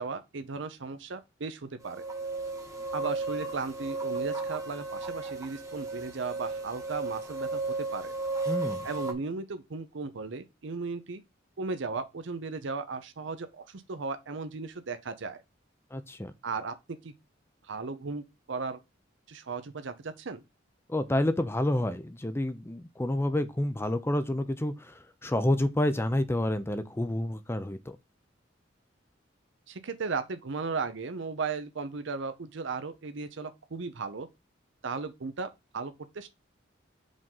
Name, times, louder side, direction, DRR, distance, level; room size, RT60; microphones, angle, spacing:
voice 1, 0.0-2.0 2.9-7.6 7.9-8.1 8.8-11.2 11.6-15.4 16.4-16.7 17.0-17.1 17.7-18.8 19.3-20.4 29.7-34.3 34.8-36.3, right 4 dB, 70° right, 0.7 m, -36 dB
sound 1, 1.8-9.1, right 3 dB, 15° right, 1.0 m, -34 dB
voice 2, 8.5-8.9 15.9-16.3 20.9-28.0, left 1 dB, 15° left, 0.5 m, -29 dB
5.2 x 3.7 x 5.4 m
head